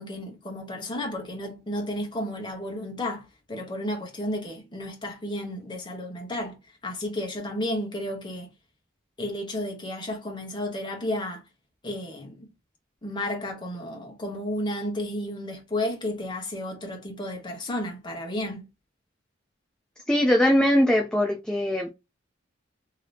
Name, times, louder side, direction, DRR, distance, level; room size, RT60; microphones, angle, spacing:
voice 1, 0.0-6.6 6.8-8.5 9.2-11.4 11.8-12.5 13.0-18.7, left 1 dB, 20° left, 1.0 m, -32 dB
voice 2, 20.1-21.9, left 1 dB, 5° left, 0.4 m, -21 dB
2.8 x 2.8 x 3.2 m
head